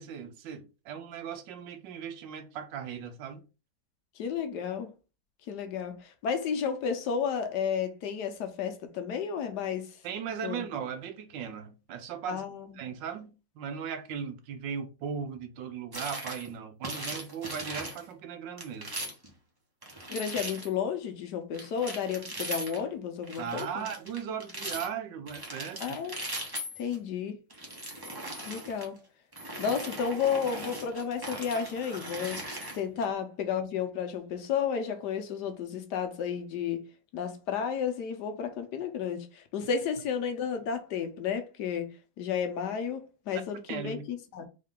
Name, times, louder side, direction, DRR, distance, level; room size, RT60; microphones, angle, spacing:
voice 1, 0.0-3.4 10.0-12.4 12.7-18.9 23.4-26.0 33.0-33.1 43.3-43.4 43.7-44.0, right 7 dB, 85° right, 1.4 m, -38 dB
voice 2, 4.2-4.9 5.5-10.0 10.4-10.6 12.3-12.7 20.1-23.9 25.8-26.2 26.8-27.4 28.5-29.0 29.6-36.9 37.1-44.5, left 7 dB, 70° left, 1.2 m, -32 dB
sound 1, 15.9-16.5 16.8-18.0 18.6-19.3 19.8-20.7 21.5-22.8 23.2-24.9 25.3-27.0 27.5-28.8 29.3-33.0, right 1 dB, 20° right, 0.7 m, -39 dB
3.7 x 3.2 x 3.6 m
omnidirectional pair, 1.9 m